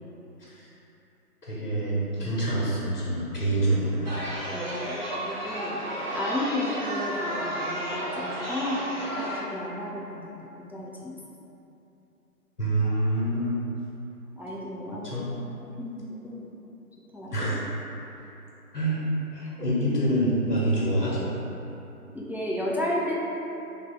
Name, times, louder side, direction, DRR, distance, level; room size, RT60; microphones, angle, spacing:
voice 1, 1.4-4.1 12.6-13.6 14.9-15.3 17.3-17.6 18.7-21.3, right 1 dB, 70° left, -7 dB, 1.0 m, -26 dB
Chatter, 4.0-9.4, equal, 65° right, 1.1 m, -32 dB
voice 2, 4.5-5.8 6.1-11.2 14.4-16.5 17.1-17.3 22.1-23.1, left 1 dB, 5° right, -5 dB, 0.3 m, -33 dB
4.8 x 2.7 x 2.3 m, 2.9 s
figure-of-eight pair, 175°, 47 cm